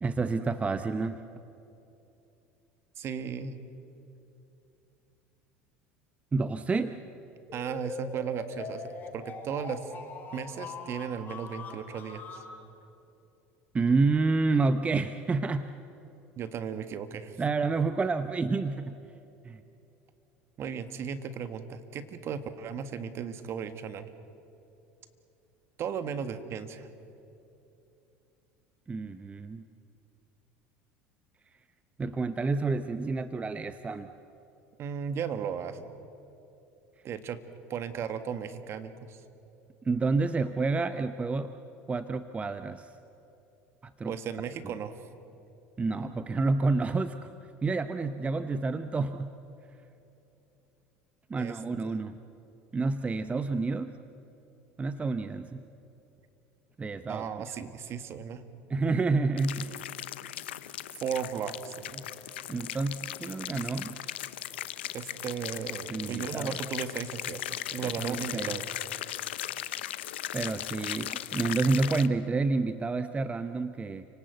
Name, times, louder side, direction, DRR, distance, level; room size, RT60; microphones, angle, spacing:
voice 1, 0.0-1.2 6.3-7.0 13.7-15.7 17.4-19.0 19.4-19.6 28.9-29.6 32.0-34.1 39.8-41.5 41.9-42.9 43.8-44.1 45.8-47.3 47.6-49.3 51.3-52.2 52.7-54.0 54.8-55.6 56.8-57.2 58.7-59.8 62.5-64.0 65.9-66.6 67.8-68.6 70.3-74.1, right 3 dB, 20° right, 11 dB, 0.8 m, -29 dB
voice 2, 2.9-3.6 7.5-9.9 10.3-12.4 16.4-17.4 20.6-24.1 25.8-26.9 34.8-35.9 37.0-37.4 37.7-39.2 44.0-45.0 51.4-52.0 57.1-58.4 61.0-62.0 64.9-68.6, right 7 dB, 50° right, 10 dB, 1.7 m, -36 dB
sound 1, 7.5-12.5, left 4 dB, 35° left, 5.7 m, -42 dB
sound 2, 59.4-72.1, left 13 dB, 90° left, 0.8 m, -38 dB
30.0 x 18.5 x 8.0 m, 2.8 s
hypercardioid pair, 85°, 6 cm